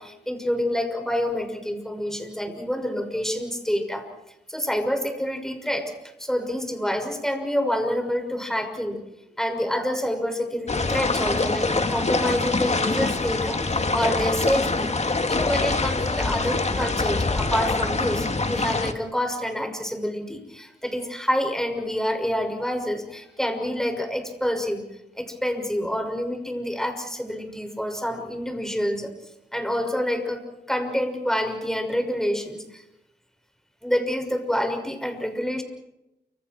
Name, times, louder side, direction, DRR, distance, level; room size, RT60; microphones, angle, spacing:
voice 1, 0.0-4.1 4.5-9.0 9.4-15.0 15.3-24.8 25.1-29.1 29.5-32.8 33.8-35.6, equal, 5° left, 5 dB, 6.2 m, -27 dB
sound 1, 10.7-18.9, left 3 dB, 40° left, 2.4 m, -24 dB
29.5 x 26.5 x 4.6 m, 0.91 s
cardioid pair, 70°, 18 cm